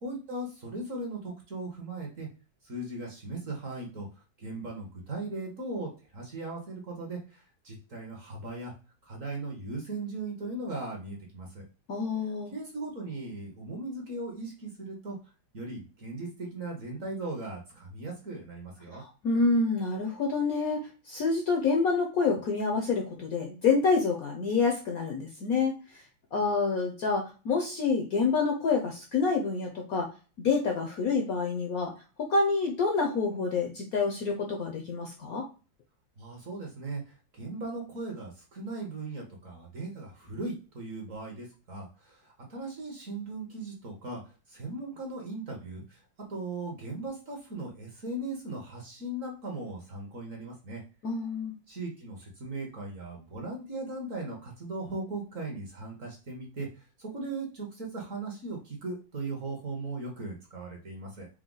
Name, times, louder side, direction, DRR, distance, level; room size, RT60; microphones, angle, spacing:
voice 1, 0.0-2.3 2.6-4.1 4.4-8.7 9.0-11.6 12.5-15.2 15.5-19.0 36.2-46.0 46.3-50.8 51.7-61.3, right 2 dB, 50° right, 0 dB, 1.2 m, -38 dB
voice 2, 11.9-12.5 18.9-25.7 26.3-30.1 30.4-31.9 32.2-35.4 51.0-51.5, left 4 dB, 65° left, 2 dB, 0.9 m, -27 dB
4.7 x 2.2 x 3.8 m, 0.34 s
omnidirectional pair, 2.1 m